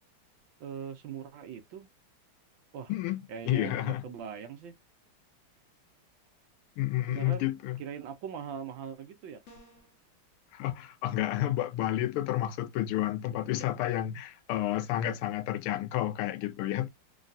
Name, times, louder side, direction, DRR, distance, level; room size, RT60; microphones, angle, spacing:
voice 1, 0.6-1.9 2.7-2.9 3.3-4.7 7.1-7.5 7.8-9.4, right 7 dB, 70° right, 1.3 m, -40 dB
voice 2, 2.9-4.0 6.8-7.8 10.5-16.9, left 13 dB, 90° left, 1.5 m, -30 dB
sound 1, 9.5-10.0, equal, 50° left, 0.9 m, -54 dB
3.9 x 2.2 x 2.5 m
omnidirectional pair, 2.4 m